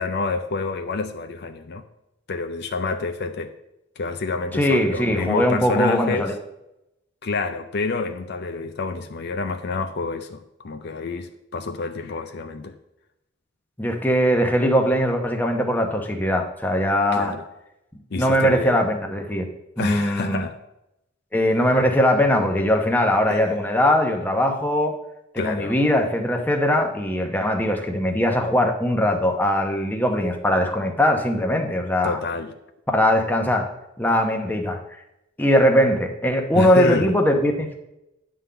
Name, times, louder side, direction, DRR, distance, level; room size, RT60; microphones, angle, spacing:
voice 1, 0.0-1.8 2.3-3.5 4.0-6.3 7.2-12.7 17.1-17.4 18.1-18.8 19.8-20.6 23.3-23.4 25.4-25.8 32.0-32.5 36.5-37.1, left 4 dB, 55° left, 8 dB, 0.5 m, -28 dB
voice 2, 4.5-6.3 13.8-17.3 18.1-19.5 19.8-20.4 21.3-24.9 25.3-32.2 32.9-33.7 34.0-34.8 35.4-37.8, equal, 10° left, 3 dB, 0.9 m, -20 dB
9.8 x 3.8 x 6.8 m, 0.88 s
head